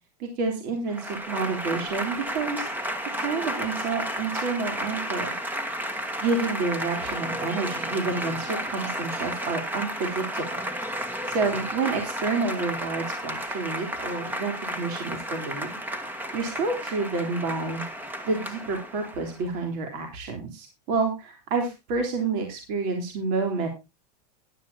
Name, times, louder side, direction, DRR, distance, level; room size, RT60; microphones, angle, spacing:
voice 1, 0.2-5.3 6.2-10.6 10.9-15.8 16.3-17.8 18.3-23.7, right 4 dB, 45° right, 3 dB, 3.6 m, -29 dB
Applause / Crowd, 0.9-19.4, equal, 10° right, 1.6 m, -32 dB
14.5 x 11.5 x 2.8 m, 0.25 s
supercardioid pair, 150°, 21 cm